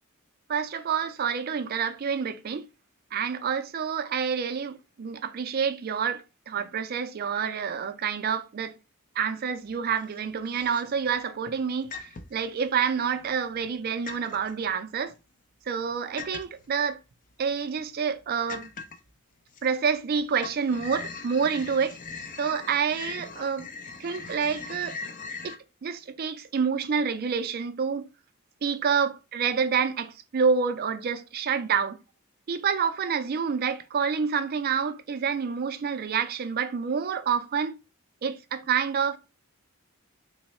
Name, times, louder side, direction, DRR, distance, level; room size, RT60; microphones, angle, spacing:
voice 1, 0.5-2.7 3.1-8.7 9.2-11.9 12.3-15.1 15.7-17.0 17.4-18.7 19.6-22.0 22.4-23.7 24.0-25.0 25.4-28.1 28.6-32.0 32.5-37.8 38.2-39.2, right 6 dB, 45° right, 0.4 m, -28 dB
sound 1, 9.7-10.2 10.5-11.2 11.9-12.5 13.1-13.8 14.1-14.5 16.2-16.7 17.3-17.4 17.8-17.9 18.5-19.1 19.5-20.1 20.4-25.6, left 4 dB, 35° left, 0.5 m, -40 dB
3.1 x 2.0 x 4.2 m
head